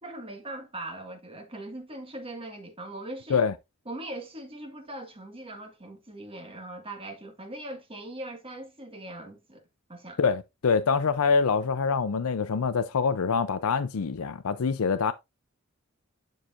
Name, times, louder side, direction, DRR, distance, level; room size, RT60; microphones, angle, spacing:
voice 1, 0.0-3.5 3.8-9.6 9.9-10.2, right 1 dB, 25° right, 1.6 m, -40 dB
voice 2, 10.2-15.1, left 5 dB, 85° left, 0.5 m, -25 dB
11.5 x 4.6 x 2.5 m
head